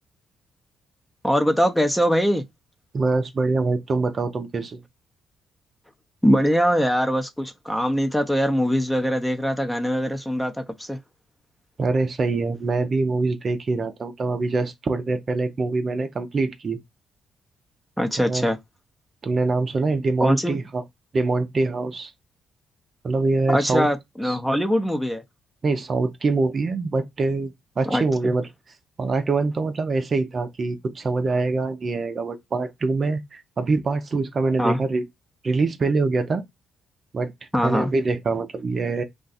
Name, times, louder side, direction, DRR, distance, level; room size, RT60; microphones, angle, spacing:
voice 1, 1.2-2.4 6.2-11.0 18.0-18.6 20.2-20.6 23.5-25.2 27.9-28.3 34.6-34.8 37.5-37.9, equal, 5° left, 0.7 m, -22 dB
voice 2, 2.9-4.8 11.8-16.8 18.2-18.5 19.2-20.8 21.1-22.1 23.0-23.9 24.2-24.4 25.6-28.5 29.0-35.0 35.4-36.4 37.1-39.0, right 3 dB, 40° right, 0.6 m, -24 dB
2.5 x 2.3 x 4.0 m
cardioid pair, 90°, 0 cm